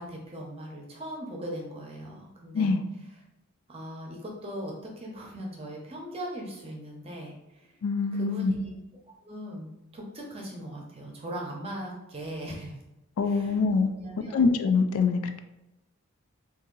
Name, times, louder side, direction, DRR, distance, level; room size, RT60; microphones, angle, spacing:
voice 1, 0.0-2.8 3.7-7.7 8.1-8.7 9.2-12.8 13.2-13.6 14.0-14.5, equal, 25° right, -1 dB, 0.7 m, -39 dB
voice 2, 7.8-8.5 13.2-13.9 14.3-15.4, left 4 dB, 80° left, 8 dB, 0.3 m, -24 dB
2.7 x 2.7 x 3.8 m, 0.92 s
head